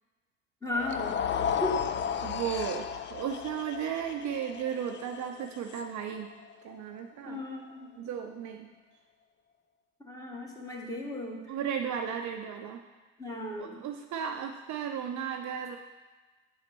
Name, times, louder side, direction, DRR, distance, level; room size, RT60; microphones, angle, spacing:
voice 1, 0.6-1.2 1.6-1.8 7.2-7.9 10.0-11.6 13.2-13.8, left 1 dB, 10° left, -2 dB, 1.8 m, -35 dB
sound 1, 0.7-7.0, left 8 dB, 30° left, 0.5 m, -34 dB
voice 2, 2.2-6.3 6.6-7.4 8.0-8.7 11.5-12.8 13.6-15.8, right 8 dB, 50° right, 4 dB, 0.7 m, -35 dB
7.2 x 4.2 x 6.0 m, 1.3 s
hypercardioid pair, 80°, 38 cm